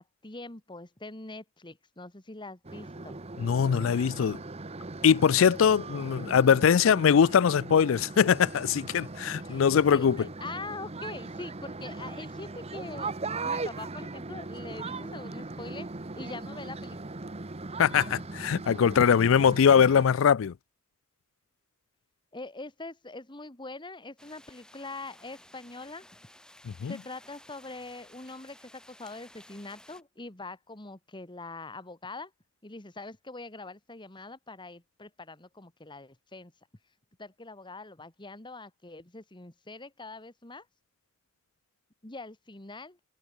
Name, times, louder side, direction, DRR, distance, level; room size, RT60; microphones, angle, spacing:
voice 1, 0.0-3.2 9.4-9.6 9.9-13.1 13.4-17.0 22.3-26.0 26.9-32.3 32.6-36.5 37.2-40.7 42.0-43.0, left 3 dB, 25° left, 1.8 m, -43 dB
sound 1, 2.6-20.1, right 3 dB, 30° right, 1.0 m, -39 dB
voice 2, 3.4-4.4 5.0-10.3 17.8-20.5 26.6-27.0, left 7 dB, 70° left, 0.4 m, -22 dB
sound 2, 24.2-30.0, left 1 dB, 5° left, 2.7 m, -55 dB
head